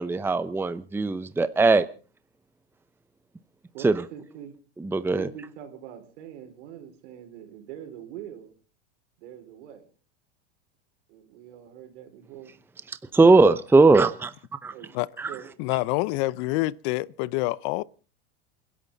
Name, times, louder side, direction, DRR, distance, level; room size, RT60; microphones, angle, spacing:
voice 1, 0.0-1.9 3.8-4.0 4.8-5.3 12.9-14.3 14.6-14.7 15.2-15.4, right 3 dB, 5° right, 0.7 m, -20 dB
voice 2, 3.7-4.5 5.2-8.5 9.2-9.8 11.1-12.6 14.7-14.9 15.3-15.5, right 10 dB, 75° right, 5.3 m, -43 dB
voice 3, 15.6-17.8, left 20 dB, 60° left, 0.8 m, -27 dB
29.0 x 11.0 x 4.0 m
supercardioid pair, 110°, 36 cm